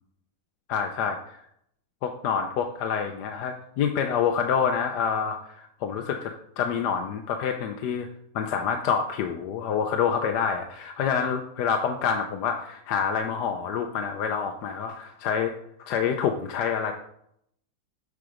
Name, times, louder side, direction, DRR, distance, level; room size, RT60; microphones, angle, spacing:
voice 1, 0.7-1.4 2.0-8.1 8.3-15.5 15.8-16.9, left 7 dB, 70° left, 5 dB, 1.2 m, -27 dB
8.6 x 4.6 x 5.0 m, 0.72 s
omnidirectional pair, 1.9 m